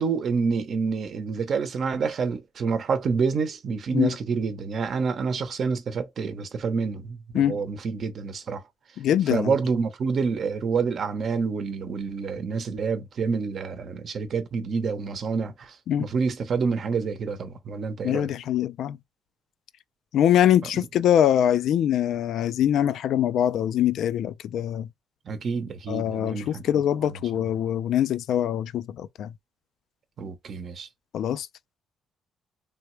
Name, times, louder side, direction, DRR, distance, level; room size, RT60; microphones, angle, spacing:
voice 1, 0.0-8.6 9.3-18.3 20.7-20.9 25.3-26.6 30.2-30.9, right 5 dB, 55° right, 0.7 m, -28 dB
voice 2, 9.0-9.5 15.9-16.1 18.0-19.0 20.1-24.9 25.9-29.3 31.1-31.5, left 10 dB, 75° left, 0.3 m, -23 dB
3.4 x 2.2 x 3.1 m
cardioid pair, 90°, 0 cm